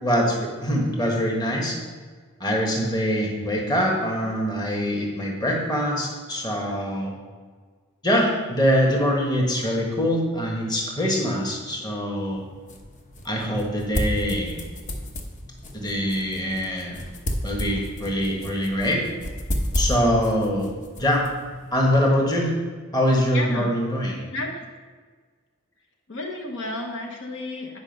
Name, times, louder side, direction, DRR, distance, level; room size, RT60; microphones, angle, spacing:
voice 1, 0.0-1.8 2.4-7.1 8.0-12.4 13.2-14.6 15.7-17.0 17.4-19.0 19.7-20.7 21.0-21.3 21.7-22.5 22.9-24.2, equal, 20° left, -1 dB, 1.5 m, -23 dB
sound 1, 12.2-22.1, equal, 35° left, 0.9 m, -32 dB
voice 2, 23.3-23.7 24.3-24.6 26.1-27.8, left 2 dB, 60° left, 1 dB, 1.0 m, -32 dB
9.7 x 5.2 x 5.4 m, 1.5 s
head